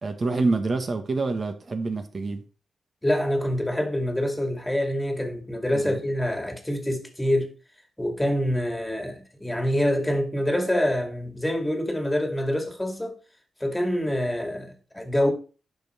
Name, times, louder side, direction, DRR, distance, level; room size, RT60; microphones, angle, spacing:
voice 1, 0.0-2.4 5.7-6.0, right 3 dB, 40° right, 1.9 m, -27 dB
voice 2, 3.0-7.5 8.0-13.2 13.6-15.3, left 1 dB, 10° left, 2.5 m, -26 dB
10.5 x 6.1 x 4.5 m
cardioid pair, 95°, 0 cm